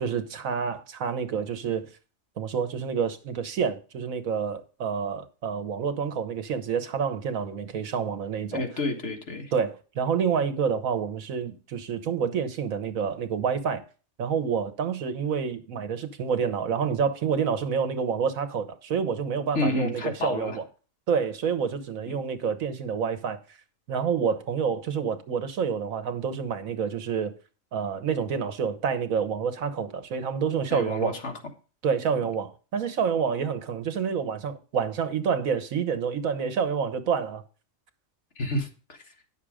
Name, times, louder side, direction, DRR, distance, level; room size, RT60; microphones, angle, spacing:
voice 1, 0.0-1.9 2.4-8.6 9.5-13.8 14.2-20.6 21.1-23.4 23.9-27.3 27.7-31.1 31.8-37.4, right 6 dB, 90° right, 1.5 m, -28 dB
voice 2, 8.5-9.5 19.6-20.6 22.1-22.2 30.7-31.3 38.4-39.0, left 2 dB, 60° left, 1.9 m, -30 dB
10.0 x 6.6 x 4.9 m
omnidirectional pair, 1.4 m